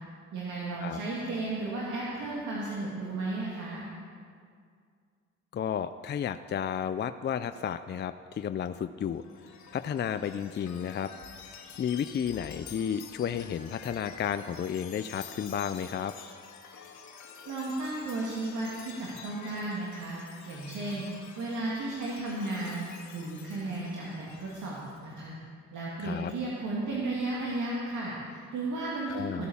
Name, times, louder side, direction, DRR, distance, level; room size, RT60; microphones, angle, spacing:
voice 1, 0.3-3.8 17.5-20.2 20.5-21.1 21.4-25.3 25.7-29.5, right 2 dB, 75° right, -5 dB, 2.4 m, -34 dB
voice 2, 5.5-9.2 9.7-11.1 11.8-16.1 26.0-26.3 29.1-29.5, left 8 dB, 35° left, 11 dB, 0.4 m, -32 dB
Chime, 9.2-25.0, left 7 dB, 70° left, 1.6 m, -49 dB
15.5 x 8.3 x 7.1 m, 2.1 s
cardioid pair, 90°, 30 cm